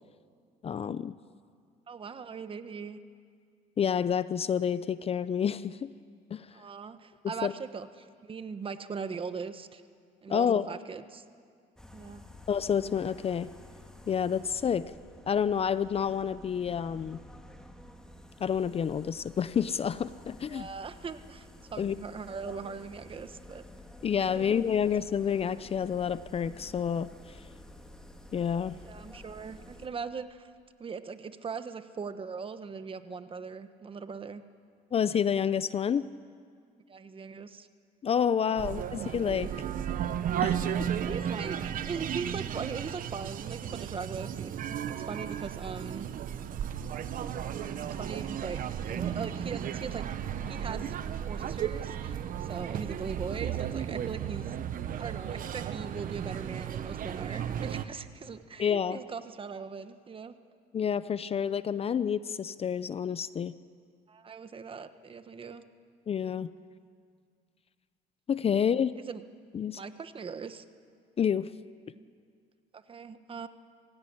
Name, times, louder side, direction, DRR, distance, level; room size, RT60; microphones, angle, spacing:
voice 1, 0.6-1.2 3.8-5.9 6.3-6.5 7.4-7.5 10.3-10.7 12.5-13.5 14.1-14.9 15.3-17.2 18.4-20.7 21.8-22.0 24.0-27.4 28.3-28.8 34.9-36.1 38.0-39.5 40.4-40.9 58.6-59.0 60.7-63.5 66.1-66.5 68.3-69.0 69.5-69.8 71.2-71.5, left 7 dB, 35° left, 15 dB, 0.6 m, -29 dB
voice 2, 1.9-3.0 6.5-9.8 10.2-11.2 11.9-12.2 20.5-23.6 24.3-24.6 28.8-30.5 30.8-34.4 36.9-37.7 38.4-38.7 41.0-44.5 44.9-46.1 47.8-50.9 51.3-54.6 55.0-60.3 64.1-65.6 69.1-69.2 69.7-70.6 72.7-73.5, right 5 dB, 30° right, 10 dB, 1.2 m, -40 dB
sound 1, 11.7-29.9, left 1 dB, 5° left, 2.1 m, -51 dB
sound 2, 38.6-57.8, right 9 dB, 55° right, 1.1 m, -34 dB
25.0 x 16.5 x 9.8 m, 2.1 s
cardioid pair, 110°, 17 cm